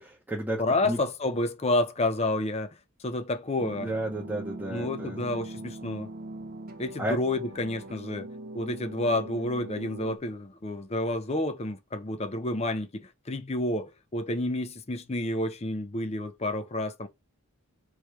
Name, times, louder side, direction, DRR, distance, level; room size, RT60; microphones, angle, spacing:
voice 1, 0.0-1.0 3.8-5.2 7.0-7.2, right 1 dB, 10° right, 0.8 m, -32 dB
voice 2, 0.6-2.7 3.0-3.9 4.7-6.1 6.8-8.3 8.5-17.1, left 2 dB, 30° left, 0.5 m, -29 dB
sound 1, 3.6-10.2, right 2 dB, 40° right, 0.5 m, -41 dB
3.2 x 3.1 x 4.6 m
head